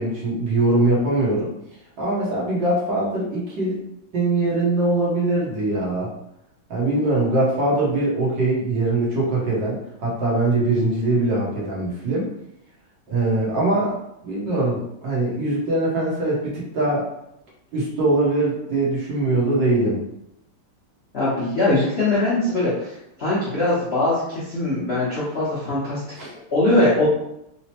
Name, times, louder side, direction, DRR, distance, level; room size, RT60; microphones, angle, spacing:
voice 1, 0.0-1.5 2.0-3.8 4.1-6.1 6.7-12.3 13.1-13.9 14.2-17.1 17.7-20.0 26.2-26.3, right 2 dB, 65° right, -5 dB, 1.5 m, -22 dB
voice 2, 21.1-26.0 26.5-27.1, left 2 dB, 75° left, -9 dB, 0.5 m, -21 dB
4.4 x 2.0 x 2.8 m, 0.82 s
omnidirectional pair, 2.4 m